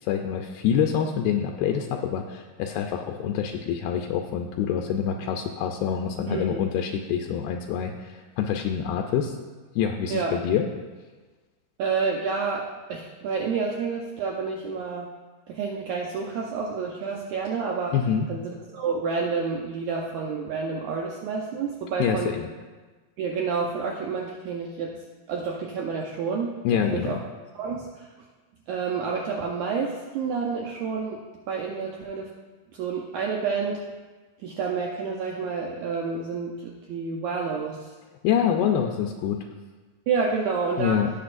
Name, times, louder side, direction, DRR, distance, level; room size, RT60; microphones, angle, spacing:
voice 1, 0.0-9.4 9.7-10.7 17.9-18.3 22.0-22.5 26.6-27.2 38.2-39.4 40.8-41.1, left 8 dB, 80° left, 3 dB, 2.4 m, -26 dB
voice 2, 6.3-6.6 10.1-10.4 11.8-15.1 15.5-18.0 18.3-22.3 23.2-25.0 25.3-26.6 26.9-27.2 27.5-28.0 28.7-31.2 31.5-32.3 32.7-33.8 34.4-37.8 40.1-41.0, right 5 dB, 90° right, -1 dB, 1.6 m, -29 dB
17.0 x 6.5 x 2.5 m, 1.3 s
omnidirectional pair, 4.4 m